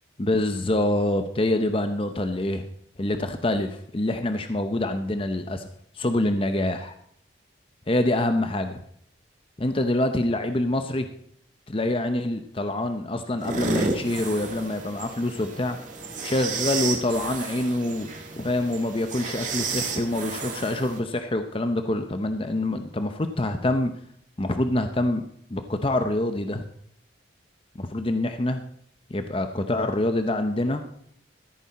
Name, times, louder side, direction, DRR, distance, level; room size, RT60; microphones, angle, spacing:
voice 1, 0.2-2.6 3.0-5.7 5.9-6.9 7.9-8.8 9.6-11.1 11.7-15.8 16.2-18.1 18.4-23.9 24.4-25.2 25.5-26.6 27.8-28.6 29.1-30.8, left 1 dB, 30° left, 7 dB, 0.7 m, -26 dB
sound 1, 13.4-21.0, right 4 dB, 40° right, 1.9 m, -32 dB
14.0 x 8.9 x 4.1 m, 0.68 s
head